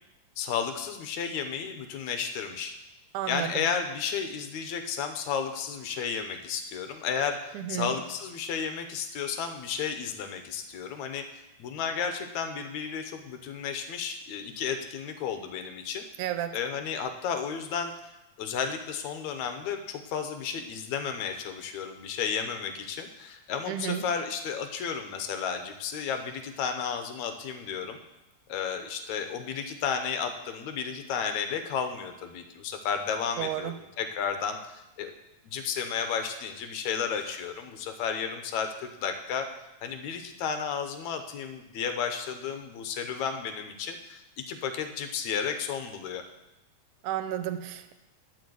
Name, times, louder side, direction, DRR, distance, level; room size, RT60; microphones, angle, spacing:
voice 1, 0.4-2.8 3.3-11.2 11.6-16.1 16.5-17.9 18.4-28.0 28.5-33.7 34.0-35.1 35.5-39.5 39.8-46.2, left 7 dB, 75° left, 7 dB, 2.0 m, -33 dB
voice 2, 3.1-3.7 7.5-8.0 16.2-16.6 23.7-24.0 33.4-33.8 47.0-47.9, right 11 dB, 80° right, 10 dB, 2.1 m, -32 dB
11.5 x 4.7 x 7.8 m, 0.93 s
omnidirectional pair, 3.6 m